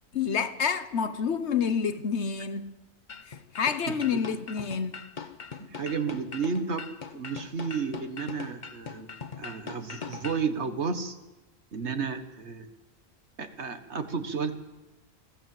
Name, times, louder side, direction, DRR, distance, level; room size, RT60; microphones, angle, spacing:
voice 1, 0.1-2.8 3.5-5.0, left 6 dB, 85° left, 1.4 m, -28 dB
sound 1, 3.1-10.5, left 5 dB, 45° left, 1.1 m, -41 dB
voice 2, 3.9-4.2 5.6-6.8 7.1-9.1 9.4-11.2 11.7-12.7 13.4-14.6, right 5 dB, 85° right, 1.8 m, -32 dB
22.5 x 15.5 x 7.9 m
omnidirectional pair, 1.1 m